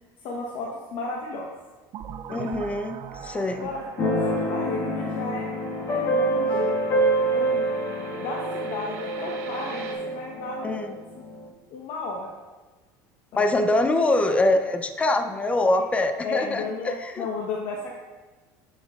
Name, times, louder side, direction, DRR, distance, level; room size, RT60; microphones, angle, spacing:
voice 1, 0.2-1.5 2.3-2.5 3.6-3.9 4.2-6.8 7.3-11.3 11.7-12.3 13.3-13.5 16.2-18.0, left 3 dB, 65° left, -2 dB, 1.1 m, -34 dB
sound 1, 1.9-6.6, right 8 dB, 45° right, 0.4 m, -41 dB
voice 2, 2.3-3.0 3.2-3.7 10.6-10.9 13.4-17.3, left 2 dB, 15° left, 6 dB, 0.5 m, -24 dB
sound 2, 3.1-9.9, right 5 dB, 90° right, 1.2 m, -43 dB
Keyboard (musical), 4.0-11.5, right 1 dB, 35° left, 1.7 m, -26 dB
9.7 x 6.2 x 2.5 m, 1.3 s
supercardioid pair, 120°, 9 cm